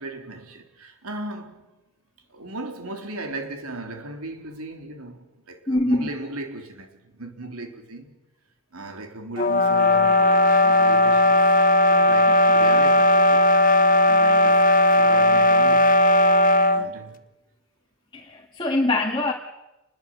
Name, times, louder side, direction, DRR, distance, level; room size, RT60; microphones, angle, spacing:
voice 1, 0.0-1.7 2.3-8.1 8.7-11.5 11.9-13.5 14.1-16.0 16.7-17.2, right 2 dB, 85° right, 4.0 m, -37 dB
voice 2, 5.7-6.1 14.1-14.4 18.1-19.3, left 2 dB, 20° left, 1.9 m, -24 dB
sound 1, 9.4-16.9, left 1 dB, 40° left, 1.3 m, -17 dB
28.5 x 21.5 x 7.8 m
head